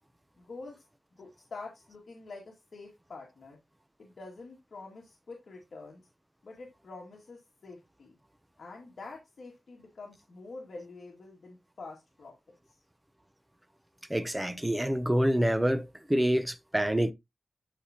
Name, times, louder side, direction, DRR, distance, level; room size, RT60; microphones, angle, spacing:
voice 1, 0.4-0.8 1.1-3.6 4.0-6.0 6.4-8.2 8.6-12.3 12.7-12.8, left 3 dB, 55° left, 2.1 m, -46 dB
voice 2, 14.1-17.1, equal, 10° right, 0.7 m, -27 dB
12.0 x 4.8 x 2.8 m
wide cardioid pair, 130°, 0 cm